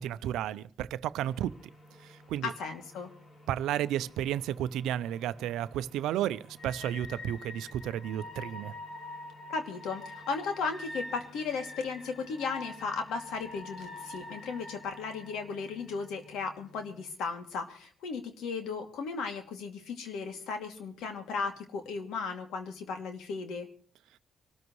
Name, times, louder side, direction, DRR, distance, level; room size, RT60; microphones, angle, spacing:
voice 1, 0.0-1.5 2.3-2.5 3.5-8.7, right 11 dB, 90° right, 0.6 m, -32 dB
sound 1, 1.2-17.1, left 1 dB, 45° left, 5.5 m, -47 dB
voice 2, 2.4-3.1 9.5-23.7, left 5 dB, 85° left, 2.5 m, -36 dB
25.5 x 14.0 x 3.2 m
cardioid pair, 90°, 0 cm